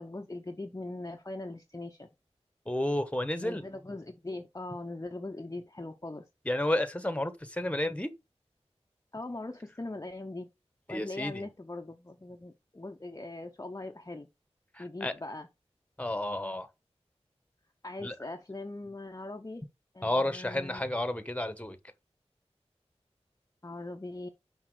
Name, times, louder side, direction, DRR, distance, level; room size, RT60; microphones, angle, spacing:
voice 1, 0.0-2.1 3.4-6.2 9.1-10.5 10.9-14.3 14.8-15.5 17.8-19.6 19.9-20.9 23.6-24.3, left 2 dB, 30° left, 0.8 m, -41 dB
voice 2, 2.7-3.6 6.5-8.1 10.9-11.5 14.7-15.1 16.0-16.7 18.0-18.1 20.0-21.8, left 1 dB, 10° left, 1.2 m, -31 dB
5.8 x 5.5 x 4.7 m
wide cardioid pair, 40°, 11 cm